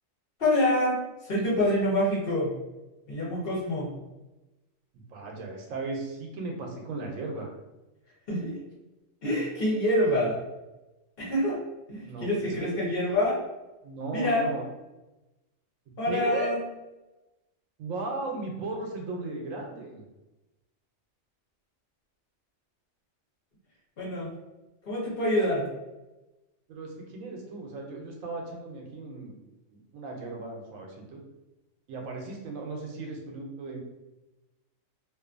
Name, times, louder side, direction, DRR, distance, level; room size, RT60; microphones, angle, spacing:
voice 1, 0.4-2.5 3.1-3.9 8.3-8.5 9.2-10.4 11.2-11.6 11.9-13.4 14.1-14.4 16.0-16.6 24.0-24.3 24.9-25.6, left 1 dB, 50° left, -6 dB, 1.0 m, -26 dB
voice 2, 4.9-7.5 12.0-12.7 13.8-14.6 16.1-16.5 17.8-20.0 26.7-29.4 29.9-31.2 31.9-33.8, right 3 dB, 85° right, 1 dB, 1.0 m, -36 dB
2.5 x 2.4 x 2.4 m, 1.0 s
omnidirectional pair, 1.4 m